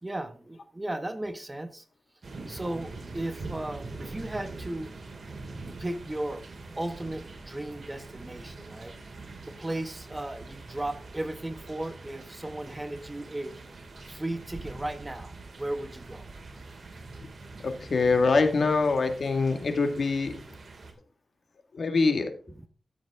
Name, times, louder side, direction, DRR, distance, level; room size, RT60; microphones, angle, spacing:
voice 1, 0.0-1.8 2.5-4.9 5.8-6.4 6.8-8.9 9.5-13.6 14.1-15.3 15.6-16.3, right 1 dB, 20° right, 10 dB, 1.1 m, -35 dB
sound 1, 2.2-20.9, right 3 dB, 60° right, 2.7 m, -44 dB
voice 2, 17.6-20.4 21.7-22.3, left 4 dB, 70° left, 7 dB, 1.9 m, -24 dB
14.0 x 7.9 x 3.7 m, 0.38 s
wide cardioid pair, 75°, 0 cm